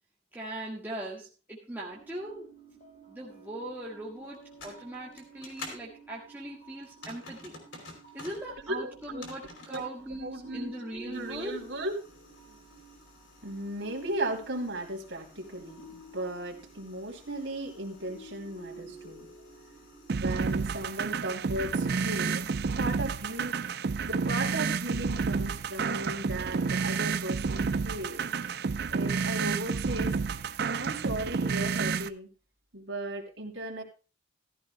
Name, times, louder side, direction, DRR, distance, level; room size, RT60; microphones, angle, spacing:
voice 1, 0.3-2.5 3.1-7.6 8.1-11.6, right 1 dB, 10° right, -5 dB, 1.5 m, -40 dB
sound 1, 1.9-20.1, right 2 dB, 45° left, 3.3 m, -52 dB
sound 2, 4.3-5.8 6.8-8.5 8.9-9.9 11.1-21.1, left 3 dB, 85° left, 3.1 m, -51 dB
voice 2, 8.7-9.3 9.7-11.9 12.5-12.6 13.4-19.3 20.1-22.4 22.7-23.6 24.0-28.2 28.9-30.1 30.7-32.3 32.7-33.8, right 1 dB, 70° right, 1 dB, 2.9 m, -36 dB
sound 3, 20.1-32.1, right 5 dB, 55° right, 0.5 m, -30 dB
15.0 x 13.5 x 2.2 m, 0.32 s
head